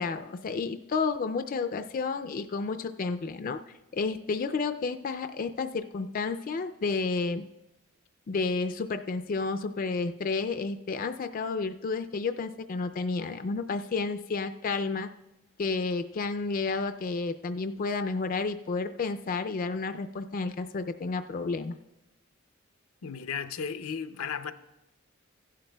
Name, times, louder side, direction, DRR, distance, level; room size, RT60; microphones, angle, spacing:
voice 1, 0.0-3.6 3.9-7.4 8.3-15.1 15.6-21.8, left 4 dB, 40° left, 0.3 m, -31 dB
voice 2, 23.0-24.5, left 6 dB, 90° left, 0.5 m, -34 dB
16.0 x 11.5 x 2.2 m
head